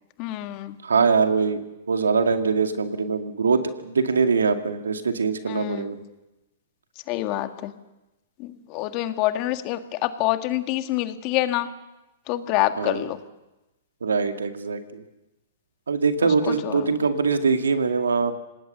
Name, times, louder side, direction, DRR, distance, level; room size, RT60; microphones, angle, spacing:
voice 1, 0.2-0.8 5.5-6.0 7.1-7.7 8.4-11.7 12.3-13.2 16.2-17.1, left 15 dB, 40° left, 8 dB, 1.9 m, -27 dB
voice 2, 0.8-1.6 1.9-6.0 12.8-13.0 14.0-15.0 15.9-18.3, right 5 dB, 85° right, 6 dB, 2.1 m, -22 dB
26.5 x 19.0 x 6.9 m, 0.99 s
hypercardioid pair, 120°, 0 cm